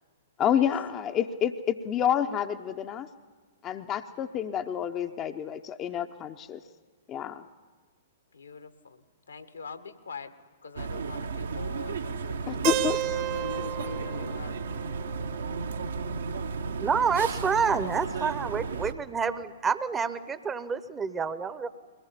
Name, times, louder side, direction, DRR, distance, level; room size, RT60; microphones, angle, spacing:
voice 1, 0.4-3.1 3.6-6.6 7.1-7.4 12.5-13.0, left 9 dB, 25° left, 7 dB, 0.8 m, -28 dB
voice 2, 8.3-10.3 10.6-12.7 13.1-14.6, left 5 dB, 75° left, 10 dB, 1.7 m, -43 dB
sound 1, 10.8-18.9, right 4 dB, 65° right, 1.3 m, -34 dB
Keyboard (musical), 12.6-16.5, right 15 dB, 40° right, 1.2 m, -34 dB
voice 3, 16.8-21.7, right 6 dB, 15° right, 14 dB, 1.0 m, -28 dB
22.5 x 19.5 x 9.9 m, 1.4 s
figure-of-eight pair, 110°, 0 cm